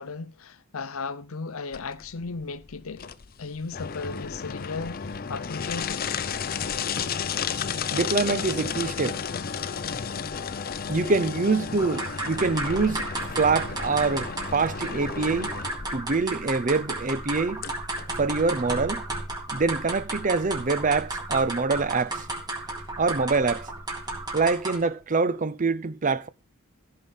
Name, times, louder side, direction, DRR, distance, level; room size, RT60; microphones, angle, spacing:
voice 1, 0.0-3.1 3.4-6.1, left 4 dB, 80° left, 0.7 m, -36 dB
sound 1, 1.7-18.8, left 6 dB, 45° left, 0.6 m, -33 dB
voice 2, 7.9-9.2 10.9-13.1 13.3-15.5 15.9-17.6 18.2-19.0 19.5-22.3 23.0-23.7 24.3-26.3, right 4 dB, 40° right, 0.6 m, -25 dB
sound 2, 11.8-25.0, right 2 dB, 20° right, 2.5 m, -33 dB
14.5 x 5.7 x 5.6 m
head